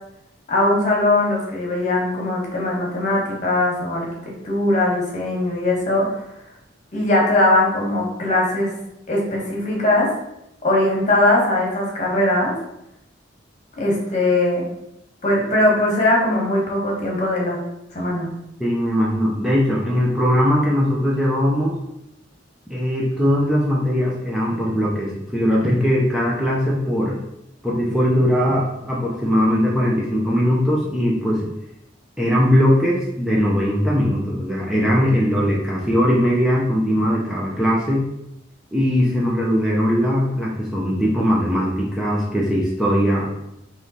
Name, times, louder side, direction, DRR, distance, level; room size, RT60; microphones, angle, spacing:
voice 1, 0.5-6.2 6.9-8.7 9.1-10.1 10.6-12.5 13.8-14.6 15.2-17.6 17.9-18.3, left 1 dB, 40° left, -3 dB, 1.3 m, -20 dB
voice 2, 18.6-21.8 22.7-27.2 27.6-31.5 32.2-38.1 38.7-43.3, equal, 5° right, -5 dB, 0.6 m, -20 dB
3.6 x 3.1 x 4.0 m, 0.85 s
head